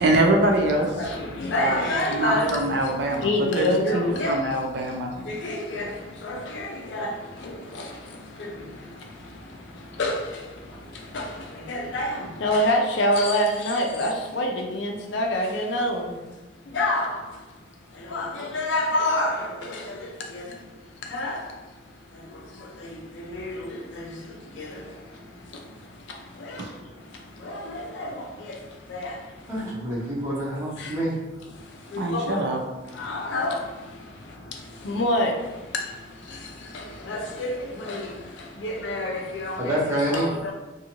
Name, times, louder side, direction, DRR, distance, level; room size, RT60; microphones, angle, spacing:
voice 1, 0.0-0.9 1.6-1.8 2.1-3.3 3.6-5.1 26.6-26.7 32.0-32.6, right 1 dB, 55° right, 1 dB, 0.4 m, -23 dB
voice 2, 1.0-2.6 3.2-4.4 5.3-5.9 6.2-7.1 7.4-7.5 8.4-8.5 10.0-10.2 11.1-11.3 11.7-16.0 16.7-17.1 18.1-19.4 19.7-19.8 20.3-20.4 21.1-21.4 23.3-23.7 24.6-24.7 27.5-27.6 28.0-28.1 28.9-29.1 31.9-32.4 33.0-33.6 34.8-35.3 37.1-38.0 38.6-39.8 40.1-40.5, left 1 dB, 65° left, 2 dB, 0.4 m, -26 dB
voice 3, 29.5-31.2 39.6-40.3, equal, 15° right, -7 dB, 0.7 m, -27 dB
2.6 x 2.5 x 2.9 m, 1.1 s
head